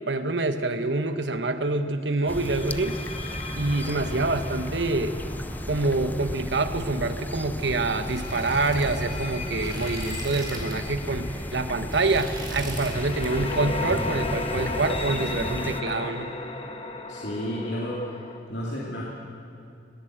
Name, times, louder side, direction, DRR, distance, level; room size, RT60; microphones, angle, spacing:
voice 1, 0.1-3.0 3.5-5.1 5.7-16.3, right 3 dB, 70° right, 9 dB, 1.2 m, -26 dB
sound 1, 0.5-0.8 2.3-7.1 7.9-18.4, left 3 dB, 35° left, 1.6 m, -36 dB
sound 2, 2.3-15.8, left 1 dB, 10° left, 0.6 m, -35 dB
sound 3, 7.5-10.9 11.2-11.4 11.8-13.0 13.2-13.6 13.9-14.9, right 1 dB, 25° right, 4.1 m, -39 dB
voice 2, 17.1-18.0 18.5-19.0, equal, 70° left, -5 dB, 2.8 m, -31 dB
21.0 x 16.0 x 8.0 m, 2.7 s
head